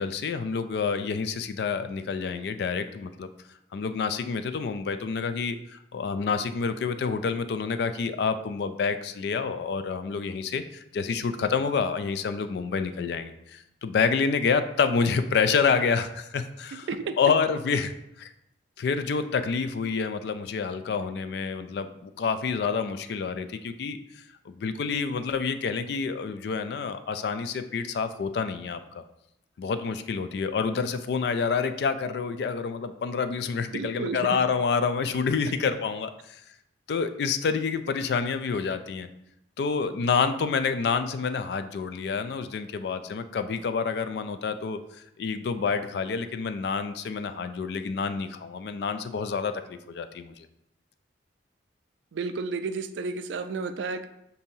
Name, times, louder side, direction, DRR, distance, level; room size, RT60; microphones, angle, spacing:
voice 1, 0.0-3.3 3.7-16.9 17.2-18.3 18.8-24.0 24.5-29.0 29.6-36.4 36.9-39.1 39.6-44.8 45.2-50.5, left 5 dB, 60° left, 10 dB, 0.3 m, -28 dB
voice 2, 16.7-17.2 33.7-34.4 52.1-54.1, right 4 dB, 80° right, 10 dB, 0.4 m, -32 dB
6.9 x 2.7 x 2.7 m, 0.81 s
head